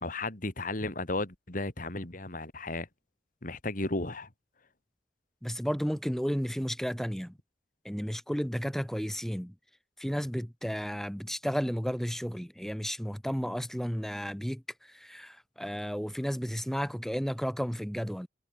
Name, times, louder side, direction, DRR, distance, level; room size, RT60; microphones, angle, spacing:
voice 1, 0.0-2.9 3.4-4.3, left 2 dB, 45° left, 2.4 m, -34 dB
voice 2, 5.4-7.3 7.8-9.5 10.0-18.3, equal, ahead, 1.7 m, -33 dB
head